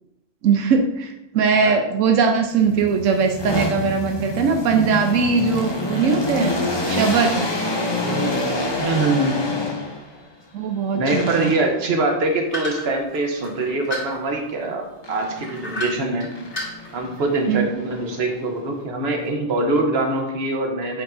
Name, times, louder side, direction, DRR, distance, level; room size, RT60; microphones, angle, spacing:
voice 1, 0.4-6.6 6.9-7.4 10.5-11.5 17.5-17.8, right 5 dB, 90° right, 5 dB, 1.0 m, -20 dB
sound 1, 2.5-10.2 11.1-11.9 15.0-15.9 16.3-18.7, left 2 dB, 25° left, 0.7 m, -27 dB
voice 2, 8.0-8.3 8.8-9.5 10.9-16.3 16.9-21.0, right 2 dB, 55° right, 2 dB, 1.2 m, -23 dB
sound 2, 12.5-14.6 15.4-16.3 16.5-17.2, left 1 dB, 60° left, 2.7 m, -30 dB
8.6 x 5.3 x 2.6 m, 0.88 s
omnidirectional pair, 1.3 m